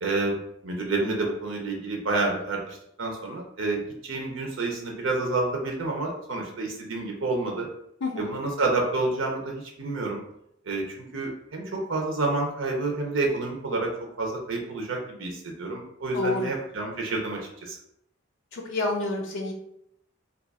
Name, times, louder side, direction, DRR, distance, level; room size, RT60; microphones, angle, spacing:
voice 1, 0.0-7.7 8.2-10.2 10.6-13.9 14.2-17.8, right 3 dB, 70° right, 0 dB, 0.6 m, -29 dB
voice 2, 8.0-8.4 16.1-16.5 18.5-19.5, left 2 dB, 65° left, 0 dB, 0.5 m, -28 dB
2.7 x 2.3 x 4.0 m, 0.77 s
head